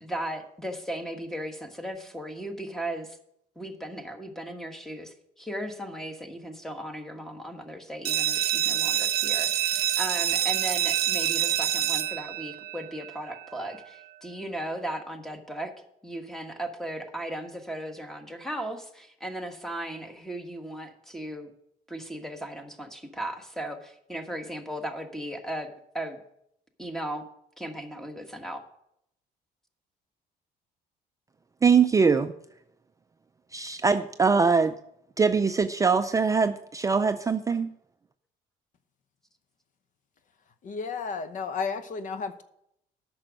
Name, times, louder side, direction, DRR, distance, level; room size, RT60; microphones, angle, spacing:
voice 1, 0.0-3.2 3.5-15.7 16.0-21.5 21.9-26.2 26.8-27.2 27.6-28.6, right 1 dB, ahead, 6 dB, 1.3 m, -36 dB
sound 1, 8.1-13.5, right 12 dB, 65° right, 0.7 m, -27 dB
voice 2, 31.6-32.3 33.5-34.8 35.2-37.7, right 5 dB, 20° right, 9 dB, 0.4 m, -22 dB
voice 3, 40.6-42.4, left 5 dB, 50° left, 11 dB, 0.9 m, -32 dB
8.7 x 6.2 x 7.9 m, 0.76 s
cardioid pair, 110°, 17 cm